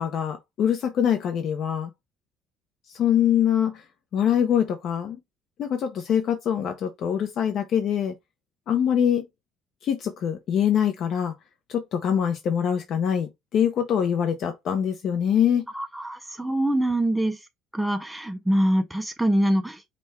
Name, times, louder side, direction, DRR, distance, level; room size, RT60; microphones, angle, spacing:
voice 1, 0.0-1.9 2.9-3.8 4.1-5.2 5.6-8.1 8.7-9.3 9.8-11.3 11.7-15.6, left 9 dB, 45° left, 0.6 m, -24 dB
voice 2, 15.7-17.4 17.7-19.9, right 1 dB, 5° right, 0.4 m, -24 dB
5.2 x 2.2 x 4.2 m
cardioid pair, 160°, 0 cm